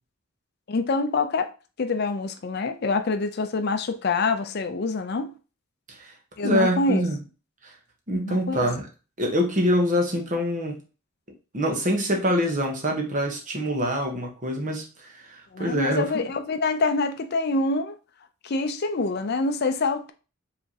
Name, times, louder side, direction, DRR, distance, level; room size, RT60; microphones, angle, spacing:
voice 1, 0.7-1.5 1.8-5.3 6.4-7.0 8.2-8.7 15.5-18.0 18.4-20.1, left 3 dB, 50° left, 0.4 m, -26 dB
voice 2, 5.9-7.2 7.6-7.7 8.1-8.8 9.2-10.8 11.5-16.1, equal, 35° right, 1.0 m, -25 dB
5.0 x 3.5 x 2.8 m
head